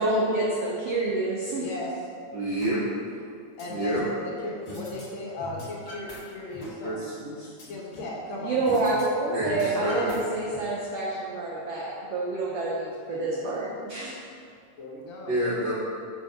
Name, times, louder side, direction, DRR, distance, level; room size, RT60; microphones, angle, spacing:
voice 1, 0.0-1.7 8.4-14.2, right 2 dB, 85° right, -5 dB, 1.3 m, -28 dB
voice 2, 1.5-1.9 3.6-7.0 7.7-8.9 9.5-10.1 13.1-13.8 14.8-15.4, left 2 dB, 70° left, -4 dB, 1.2 m, -37 dB
voice 3, 2.3-2.8 3.7-4.0 6.8-7.5 9.2-10.1 15.3-15.7, right 1 dB, 65° right, -9 dB, 1.1 m, -28 dB
sound 1, 2.6-2.7 3.1-4.2 4.7-5.0 5.3-6.2 6.5-8.2 8.7-9.0 9.3-10.6, left 2 dB, 50° left, 1.7 m, -42 dB
5.9 x 3.6 x 5.3 m, 2.3 s
omnidirectional pair, 3.6 m